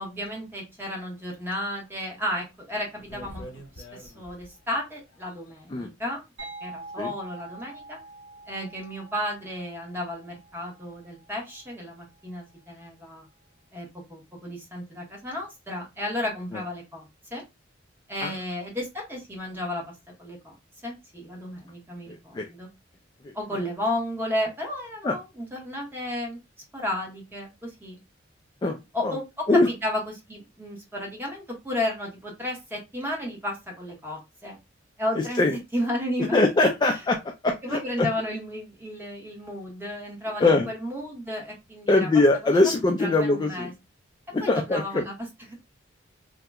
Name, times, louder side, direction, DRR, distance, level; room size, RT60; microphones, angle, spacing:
voice 1, 0.0-3.4 3.7-6.2 6.6-8.0 8.5-13.3 13.7-17.1 17.3-17.4 18.1-20.6 20.8-22.7 23.3-26.4 26.7-28.0 28.9-34.6 35.0-36.4 36.9-37.0 37.6-42.1 42.4-42.6 43.0-43.7 44.4-45.5, left 1 dB, 10° right, 0 dB, 1.0 m, -33 dB
sound 1, 1.8-1.9 2.4-2.5 2.9-4.6 5.1-5.6, equal, 85° left, 0.9 m, -44 dB
sound 2, 6.4-11.9, right 2 dB, 65° right, 1.5 m, -45 dB
voice 2, 22.1-22.5 23.2-23.3 25.0-25.1 28.6-28.8 29.0-29.2 29.5-29.7 35.4-35.5 36.3-37.2 37.4-38.1 40.4-40.7 41.9-43.7 44.3-45.0, left 2 dB, 20° left, 2 dB, 0.3 m, -22 dB
2.8 x 2.1 x 3.4 m, 0.24 s
head